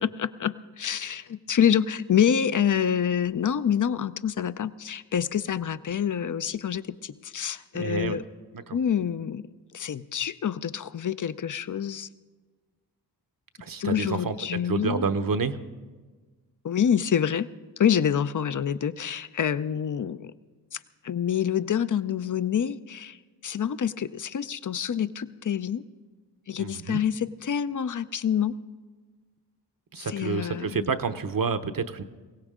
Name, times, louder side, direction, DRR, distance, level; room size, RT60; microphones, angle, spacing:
voice 1, 0.0-8.2 8.7-12.1 13.8-15.0 16.6-17.5 17.8-20.3 20.7-20.8 21.0-23.2 23.4-25.8 26.5-28.5 30.0-30.9, left 8 dB, 45° left, 14 dB, 0.6 m, -27 dB
voice 2, 7.7-8.2 8.5-8.8 13.6-15.6 26.6-27.0 29.9-32.0, right 5 dB, 50° right, 10 dB, 0.9 m, -29 dB
21.0 x 17.0 x 3.7 m, 1.4 s
cardioid pair, 45°, 42 cm